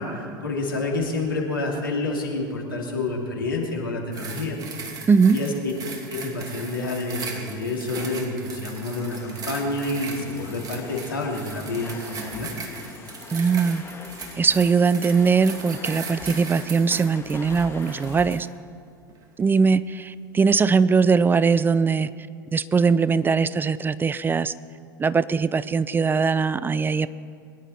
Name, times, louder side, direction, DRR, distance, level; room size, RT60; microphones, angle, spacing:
voice 1, 0.0-4.6 5.3-5.7 6.1-12.5, left 2 dB, 85° left, -1 dB, 2.8 m, -28 dB
sound 1, 4.1-18.5 19.1-19.2, right 4 dB, 35° right, 2.5 m, -38 dB
voice 2, 5.1-5.4 13.3-13.8 14.4-18.5 19.4-22.1 22.5-24.5 25.0-27.1, right 5 dB, 20° right, 17 dB, 0.4 m, -20 dB
Domestic sounds home sounds, 7.7-18.4, left 4 dB, 20° left, 1.7 m, -44 dB
22.5 x 11.0 x 4.3 m, 2.3 s
hypercardioid pair, 85°, 11 cm